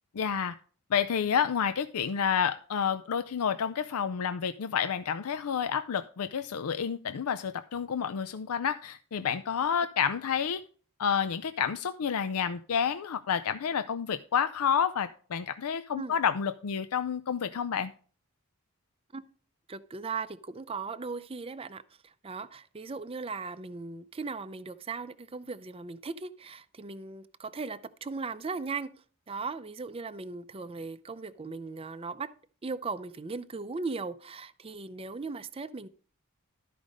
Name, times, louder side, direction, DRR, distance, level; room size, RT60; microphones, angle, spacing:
voice 1, 0.1-0.6 0.9-10.6 11.0-17.9, left 7 dB, 75° left, 0.5 m, -29 dB
voice 2, 19.7-28.9 29.3-32.3 32.6-35.9, right 4 dB, 25° right, 0.5 m, -38 dB
12.5 x 5.0 x 5.1 m
head